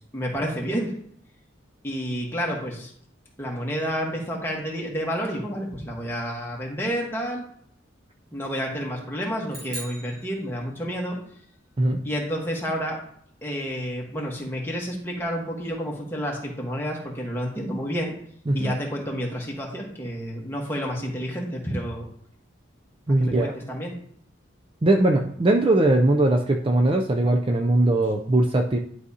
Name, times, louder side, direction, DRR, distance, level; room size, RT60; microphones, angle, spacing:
voice 1, 0.1-0.9 1.8-2.9 3.4-7.4 8.3-11.2 12.0-13.0 13.4-18.1 18.5-22.1 23.2-23.9, equal, 10° left, -2 dB, 1.3 m, -30 dB
sound 1, 9.5-11.1, right 2 dB, 45° right, 1.8 m, -40 dB
voice 2, 23.1-23.5 24.8-28.8, right 1 dB, 25° right, 2 dB, 0.4 m, -20 dB
11.0 x 4.8 x 2.8 m, 0.64 s
head